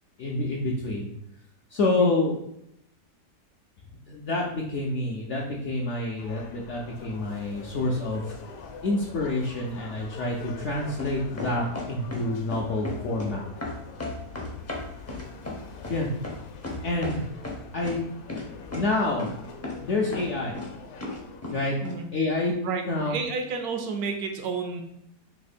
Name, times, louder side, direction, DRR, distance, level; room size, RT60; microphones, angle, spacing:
voice 1, 0.2-1.1 1.7-2.3 4.1-8.4 8.8-13.5 15.9-16.1 16.8-17.2 17.7-18.0 18.5-19.3 19.8-20.6 21.5-21.8 22.1-22.5 22.9-23.1, left 2 dB, 70° left, -2 dB, 0.7 m, -28 dB
sound 1, 6.2-21.4, left 5 dB, 85° left, 1.2 m, -44 dB
sound 2, 11.0-12.2 12.5-13.3 13.6-17.2 17.4-18.0 18.3-18.4 18.7-18.8 19.2-19.4 19.6-19.8 20.1-20.7 21.0-21.6 21.8-21.9, left 2 dB, 20° left, 0.4 m, -34 dB
voice 2, 22.6-24.8, right 4 dB, 75° right, 4 dB, 1.0 m, -31 dB
3.5 x 2.9 x 4.1 m, 0.76 s
omnidirectional pair, 1.8 m